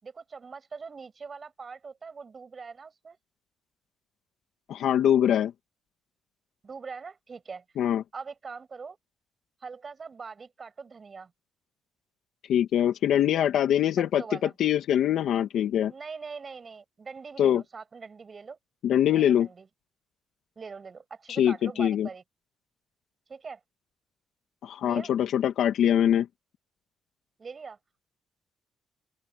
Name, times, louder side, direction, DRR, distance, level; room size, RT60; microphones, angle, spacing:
voice 1, 0.0-3.2 6.6-7.6 8.1-9.0 9.6-11.3 14.2-14.5 15.9-18.6 19.1-19.7 20.6-22.2 23.3-23.6 24.8-25.1 27.4-27.8, right 5 dB, 35° right, 6.7 m, -42 dB
voice 2, 4.7-5.5 7.8-8.0 12.5-15.9 17.4-17.6 18.8-19.5 21.3-22.1 24.6-26.3, left 10 dB, 75° left, 2.4 m, -23 dB
open air
cardioid pair, 90°, 0 cm